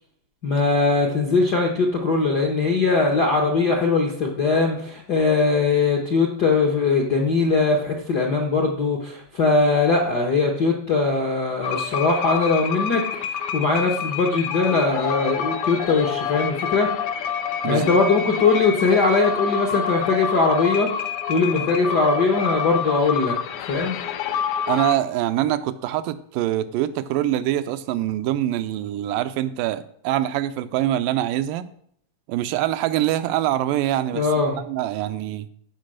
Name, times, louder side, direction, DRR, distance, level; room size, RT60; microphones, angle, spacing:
voice 1, 0.4-16.9 17.6-23.3 23.7-24.0 34.1-34.6, left 3 dB, 60° left, 1 dB, 1.0 m, -21 dB
sound 1, 11.6-25.0, left 7 dB, 75° left, 1.9 m, -27 dB
voice 2, 17.6-18.0 24.7-31.7 32.3-34.3 34.6-35.5, right 13 dB, 80° right, 11 dB, 2.2 m, -24 dB
15.0 x 5.3 x 6.4 m, 0.67 s
omnidirectional pair, 3.9 m